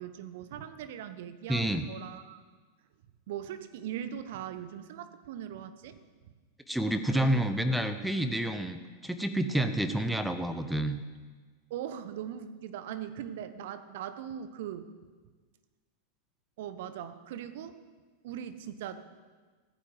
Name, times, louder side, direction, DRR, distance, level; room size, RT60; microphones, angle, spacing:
voice 1, 0.0-2.4 3.3-6.0 7.1-7.4 9.5-9.8 11.7-14.9 16.6-17.8 18.2-19.0, right 10 dB, 55° right, 12 dB, 1.1 m, -40 dB
voice 2, 1.5-1.9 6.7-8.8 9.0-11.0, right 1 dB, ahead, 8 dB, 1.0 m, -29 dB
14.5 x 9.6 x 7.6 m, 1.4 s
figure-of-eight pair, 90°, 0 cm